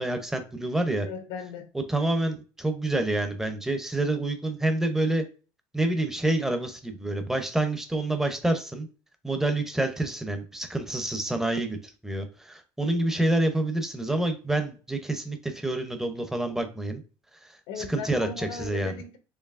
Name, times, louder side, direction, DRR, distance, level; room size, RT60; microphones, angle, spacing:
voice 1, 0.0-1.1 1.9-5.3 5.7-8.9 9.2-17.0 17.8-19.0, right 2 dB, 5° right, 0.6 m, -27 dB
voice 2, 1.0-1.7 17.7-19.2, left 6 dB, 85° left, 0.8 m, -37 dB
4.6 x 2.9 x 2.4 m
cardioid pair, 135°, 9 cm